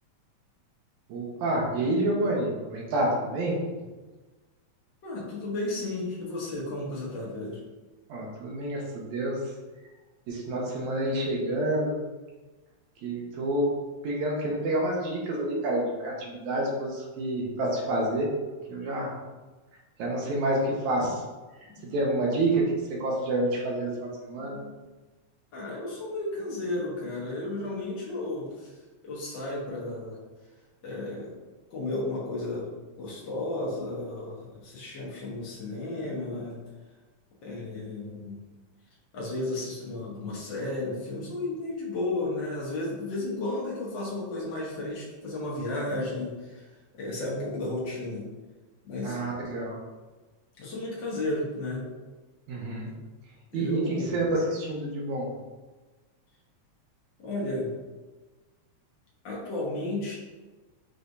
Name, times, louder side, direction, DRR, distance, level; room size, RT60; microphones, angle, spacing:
voice 1, 1.1-3.6 8.1-9.4 10.3-12.0 13.0-18.3 18.7-19.1 20.0-21.2 21.9-22.6 22.9-24.6 49.0-49.8 52.5-52.9 53.5-55.3, right 1 dB, 80° right, -2 dB, 2.2 m, -28 dB
voice 2, 5.0-7.6 21.6-21.9 24.4-24.7 25.5-28.7 29.0-30.2 30.8-31.3 31.7-32.7 33.0-36.6 37.4-38.4 39.1-46.7 47.0-48.3 48.8-49.2 50.6-51.8 53.5-54.1 57.2-57.7 59.2-60.1, left 2 dB, 55° left, -5 dB, 1.3 m, -33 dB
6.1 x 3.1 x 2.6 m, 1.2 s
omnidirectional pair, 3.3 m